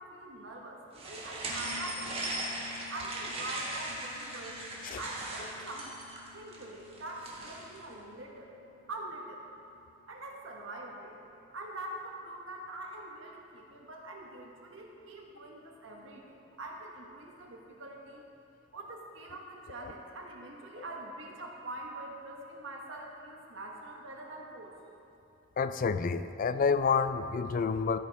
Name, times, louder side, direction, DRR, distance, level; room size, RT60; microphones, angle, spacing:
voice 1, 0.0-2.4 2.9-4.6 4.9-6.0 6.3-8.5 8.9-9.4 10.1-11.2 11.5-18.2 18.7-24.7, right 2 dB, 70° right, 0 dB, 1.5 m, -44 dB
sound 1, 0.9-7.8, right 1 dB, 30° right, 1.8 m, -39 dB
Piano, 1.5-10.0, left 7 dB, 90° left, 2.7 m, -54 dB
voice 2, 25.6-28.0, left 5 dB, 45° left, 12 dB, 0.3 m, -29 dB
14.0 x 9.0 x 3.6 m, 2.7 s
head